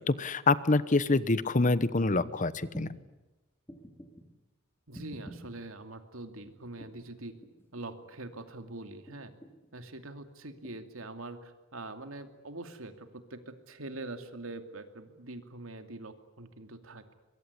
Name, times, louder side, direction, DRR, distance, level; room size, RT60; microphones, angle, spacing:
voice 1, 0.1-2.9, left 3 dB, 40° left, 16 dB, 1.0 m, -26 dB
sound 1, 2.2-2.3 2.7-3.0 3.7-4.2 4.9-5.5 6.4-7.0 7.4-8.0 9.1-9.7 10.6-10.7, equal, 10° left, 3.5 m, -48 dB
voice 2, 4.9-7.4 7.7-9.3 9.7-17.1, right 2 dB, 90° right, 7 dB, 2.6 m, -44 dB
23.5 x 22.5 x 9.9 m, 1.1 s
head